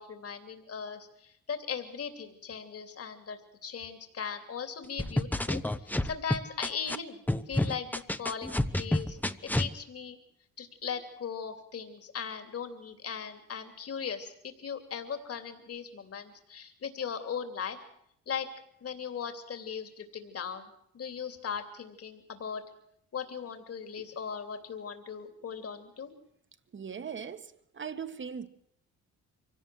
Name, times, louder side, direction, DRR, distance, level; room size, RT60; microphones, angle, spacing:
voice 1, 0.0-10.2 10.6-17.8 18.3-18.5 18.8-22.6 23.1-26.1, left 7 dB, 50° left, 3.1 m, -38 dB
sound 1, 5.0-7.0 7.3-9.7, left 1 dB, 5° left, 1.0 m, -29 dB
voice 2, 26.7-28.5, right 6 dB, 40° right, 1.7 m, -39 dB
24.0 x 17.5 x 7.8 m
cardioid pair, 90°, 30 cm